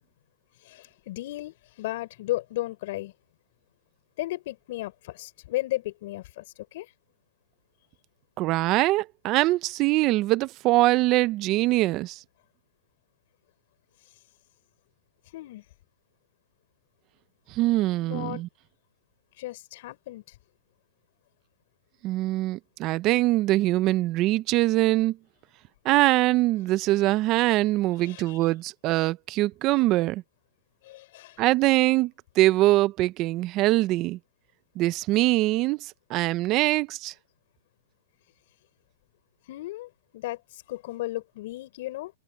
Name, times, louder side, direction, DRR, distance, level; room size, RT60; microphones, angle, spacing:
voice 1, 0.6-3.1 4.2-6.4 6.7-6.9 15.3-15.6 18.0-18.4 19.4-20.3 28.0-28.4 30.8-31.4 39.5-42.1, left 17 dB, 55° left, 6.0 m, -35 dB
voice 2, 8.4-12.2 17.5-18.5 22.0-25.2 25.8-30.2 31.4-34.2 34.8-37.1, right 18 dB, 35° right, 0.9 m, -23 dB
hypercardioid pair, 135°, 0 cm